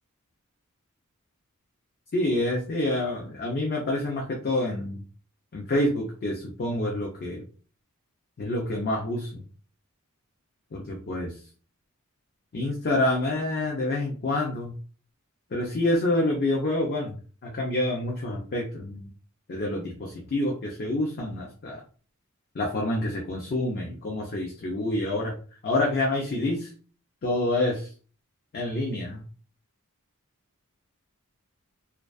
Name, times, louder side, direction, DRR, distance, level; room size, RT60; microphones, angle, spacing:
voice 1, 2.1-5.0 5.5-7.4 8.4-9.4 10.7-11.3 12.5-14.7 15.5-17.2 17.4-19.1 19.5-21.8 22.6-25.3 25.6-26.7 27.2-27.9 28.5-29.2, left 1 dB, 45° left, 0 dB, 0.4 m, -27 dB
2.3 x 2.3 x 2.4 m, 0.40 s
head